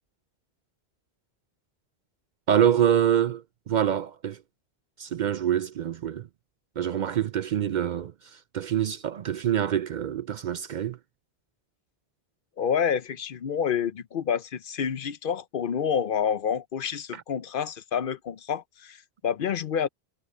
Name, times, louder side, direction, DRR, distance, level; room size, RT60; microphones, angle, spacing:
voice 1, 2.5-4.4 5.0-6.3 6.8-11.0 17.1-17.2, right 9 dB, 55° right, 0.6 m, -26 dB
voice 2, 12.6-19.9, left 7 dB, 60° left, 0.8 m, -28 dB
omnidirectional pair, 1.0 m